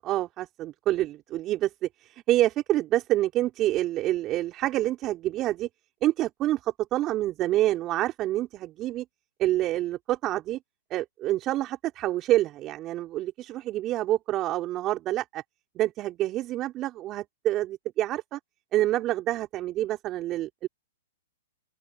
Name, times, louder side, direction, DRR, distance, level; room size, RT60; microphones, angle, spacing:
voice 1, 0.0-5.7 6.0-9.0 9.4-10.6 10.9-15.4 15.7-18.4 18.7-20.7, right 14 dB, 30° right, 4.2 m, -27 dB
open air
hypercardioid pair, 120°, 0 cm